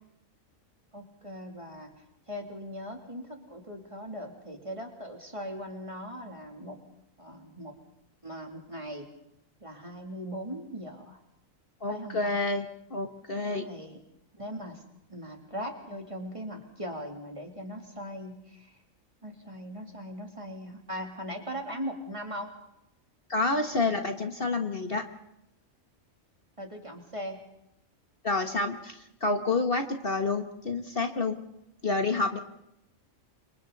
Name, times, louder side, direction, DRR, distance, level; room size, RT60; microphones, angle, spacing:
voice 1, 0.9-1.9 2.3-6.8 7.2-7.7 8.2-9.1 9.6-11.2 11.9-12.4 13.6-14.0 14.4-14.8 15.1-18.7 19.2-22.5 26.6-27.4, equal, 25° right, 2 dB, 3.2 m, -39 dB
voice 2, 11.8-13.7 23.3-25.1 28.2-31.4 31.8-32.4, left 3 dB, 45° left, 5 dB, 1.7 m, -29 dB
29.5 x 26.0 x 4.2 m, 0.83 s
omnidirectional pair, 1.4 m